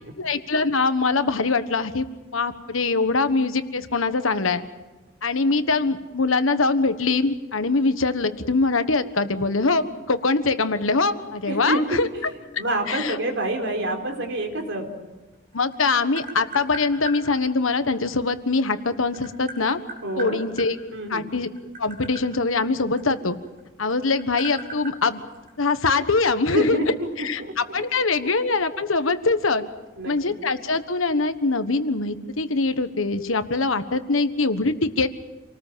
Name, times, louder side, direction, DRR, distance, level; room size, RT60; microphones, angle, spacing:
voice 1, 0.2-2.0 2.3-4.6 5.2-12.1 12.9-13.2 15.5-19.8 20.2-20.8 21.1-21.5 21.8-23.4 23.8-25.2 25.6-26.8 27.2-27.4 27.7-29.7 30.0-35.1, left 3 dB, 85° left, 10 dB, 1.4 m, -23 dB
voice 2, 11.5-11.8 12.6-14.9 20.0-20.4 20.9-21.3 26.5-27.8 30.0-30.4, right 1 dB, 65° right, 3 dB, 4.1 m, -27 dB
Tap, 15.3-17.2 18.5-20.7 21.4-23.6 23.9-25.9, right 2 dB, 40° right, 6.2 m, -37 dB
27.5 x 19.5 x 7.5 m, 1.1 s
head